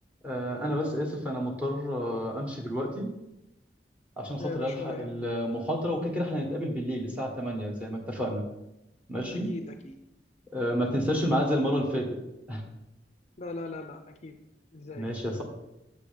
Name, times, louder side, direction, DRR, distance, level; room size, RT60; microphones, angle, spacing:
voice 1, 0.2-3.1 4.2-8.4 9.1-9.5 10.5-12.2 12.5-12.6 14.9-15.4, equal, 10° right, 1 dB, 1.6 m, -30 dB
voice 2, 4.4-5.2 9.3-10.0 13.4-14.4 14.7-15.1, left 2 dB, 40° left, 6 dB, 0.5 m, -39 dB
8.1 x 6.7 x 5.2 m, 0.91 s
head